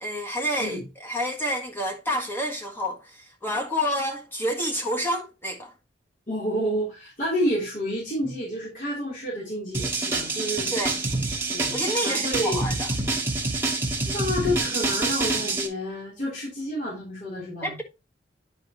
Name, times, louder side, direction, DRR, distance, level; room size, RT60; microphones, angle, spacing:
voice 1, 0.0-5.7 10.7-11.0 11.7-12.9 17.6-17.8, equal, 10° left, 1.5 m, -29 dB
voice 2, 6.3-10.7 11.5-12.7 14.1-17.8, equal, 45° left, 3.2 m, -29 dB
sound 1, 9.7-15.7, right 3 dB, 15° right, 1.6 m, -27 dB
10.0 x 5.2 x 2.9 m
head